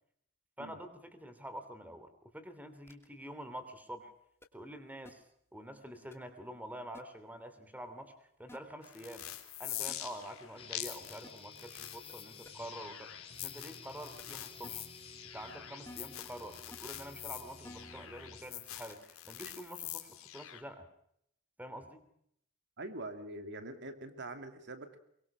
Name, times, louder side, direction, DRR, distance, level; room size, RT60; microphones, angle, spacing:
voice 1, 0.6-4.1 4.5-5.2 5.5-9.3 9.6-14.8 15.3-20.9 21.6-22.0, equal, 10° right, 10 dB, 3.0 m, -47 dB
sound 1, 2.9-3.1 4.4-4.5 5.0-5.1 6.1-6.2 6.9-7.0 8.5-8.6 9.9-10.0 11.2-11.3 12.1-12.2 12.4-12.5 14.2-14.3 14.6-14.7 15.8-16.3 16.7-16.8 17.6-18.1 18.9-19.1, left 1 dB, 10° left, 2.6 m, -52 dB
sound 2, 8.8-20.6, left 13 dB, 75° left, 3.2 m, -45 dB
sound 3, 10.6-18.6, left 4 dB, 25° left, 3.8 m, -53 dB
voice 2, 22.8-25.0, right 2 dB, 55° right, 8 dB, 2.6 m, -44 dB
24.0 x 23.5 x 6.0 m, 0.72 s
head